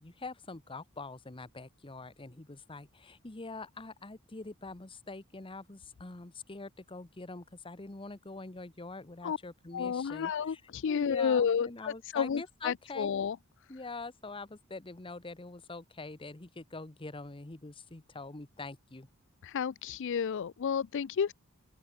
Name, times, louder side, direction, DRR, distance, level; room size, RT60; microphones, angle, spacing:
voice 1, 0.0-10.6 10.9-13.1 13.7-19.1, left 3 dB, 25° left, 1.0 m, -44 dB
voice 2, 9.7-13.4 19.4-21.3, left 7 dB, 55° left, 0.4 m, -31 dB
open air
head